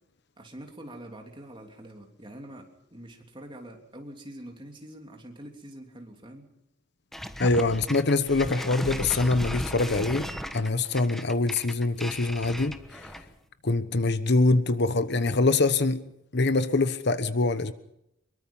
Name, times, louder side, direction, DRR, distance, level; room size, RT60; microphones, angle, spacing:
voice 1, 0.4-2.7 2.9-6.5, right 1 dB, 25° right, 3 dB, 3.2 m, -44 dB
sound 1, 7.1-13.4, equal, ahead, 1.2 m, -36 dB
voice 2, 7.4-13.1 13.6-16.0 16.3-17.7, left 3 dB, 55° left, 12 dB, 1.1 m, -24 dB
24.0 x 22.5 x 5.6 m, 0.79 s
head